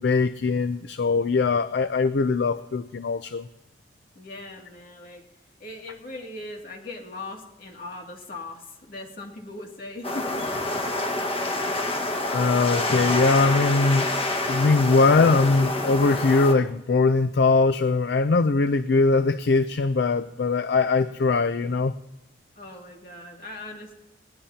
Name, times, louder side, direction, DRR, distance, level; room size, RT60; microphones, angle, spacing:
voice 1, 0.0-3.5 12.3-14.1 14.5-21.9, left 3 dB, 70° left, 11 dB, 0.4 m, -21 dB
voice 2, 4.1-5.3 5.6-10.5 11.4-11.7 22.6-23.9, left 2 dB, 55° left, 0 dB, 2.5 m, -39 dB
sound 1, 10.0-16.5, left 2 dB, 30° left, 1.5 m, -27 dB
20.0 x 17.5 x 2.9 m, 0.95 s
head